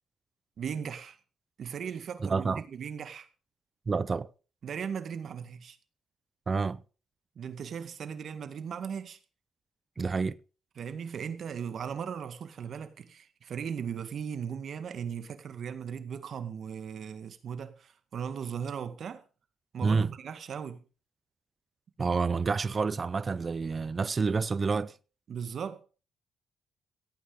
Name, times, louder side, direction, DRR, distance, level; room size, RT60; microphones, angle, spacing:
voice 1, 0.6-1.2 1.6-3.3 4.6-5.8 7.4-9.2 10.8-19.2 19.7-20.8 25.3-25.9, right 7 dB, 55° right, 2.0 m, -37 dB
voice 2, 2.2-2.6 3.9-4.3 6.5-6.8 10.0-10.4 19.8-20.1 22.0-24.9, right 4 dB, 35° right, 0.6 m, -28 dB
15.5 x 8.9 x 5.2 m
cardioid pair, 90°, 0 cm